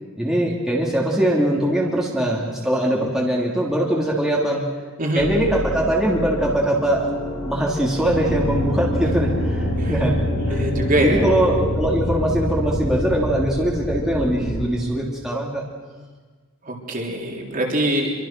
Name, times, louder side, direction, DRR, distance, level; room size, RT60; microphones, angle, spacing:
voice 1, 0.2-4.6 5.1-7.1 7.5-10.2 10.5-15.6, right 1 dB, ahead, -3 dB, 3.3 m, -22 dB
sound 1, 5.2-14.6, left 1 dB, 75° left, 5.7 m, -26 dB
voice 2, 10.5-11.2 16.7-18.1, right 1 dB, 40° right, -1 dB, 3.9 m, -23 dB
28.0 x 24.0 x 6.2 m, 1.4 s
head